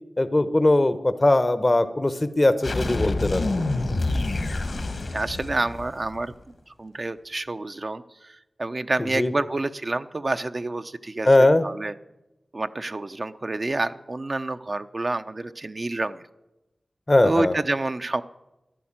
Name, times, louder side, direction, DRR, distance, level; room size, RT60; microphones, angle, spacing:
voice 1, 0.2-3.4 9.0-9.3 11.2-11.6 17.1-17.5, left 2 dB, 35° left, 12 dB, 0.9 m, -20 dB
sound 1, 2.6-6.3, left 2 dB, 70° left, 1.9 m, -27 dB
voice 2, 5.1-6.3 6.8-11.9 12.5-16.2 17.2-18.2, right 2 dB, 45° right, 9 dB, 0.7 m, -28 dB
12.5 x 11.0 x 8.9 m, 0.95 s
cardioid pair, 45°, 0 cm